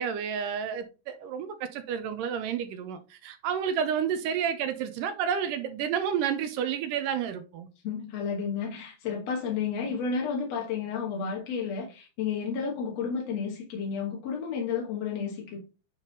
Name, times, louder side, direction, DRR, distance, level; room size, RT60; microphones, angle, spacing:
voice 1, 0.0-7.7, right 8 dB, 80° right, 2.2 m, -30 dB
voice 2, 7.8-15.6, left 6 dB, 60° left, 2.1 m, -31 dB
9.1 x 3.4 x 4.0 m
omnidirectional pair, 4.1 m